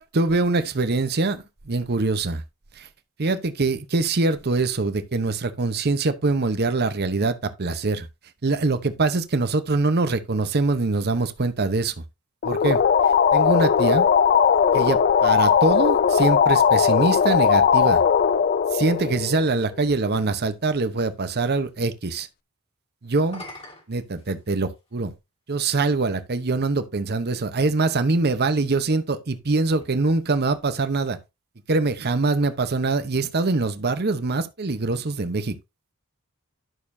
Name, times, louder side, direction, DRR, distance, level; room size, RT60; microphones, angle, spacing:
voice 1, 0.1-2.4 2.8-2.9 3.2-8.1 8.4-12.0 12.4-12.8 13.3-14.1 14.7-18.0 18.7-22.3 23.0-23.4 23.9-25.1 25.5-31.2 31.7-35.6, right 3 dB, 45° right, 0.8 m, -23 dB
sound 1, 12.4-19.8, left 7 dB, 45° left, 0.4 m, -19 dB
sound 2, 18.5-20.3 23.1-24.9 25.8-25.9 29.6-31.2, left 1 dB, 25° left, 2.1 m, -47 dB
11.0 x 6.7 x 2.7 m
head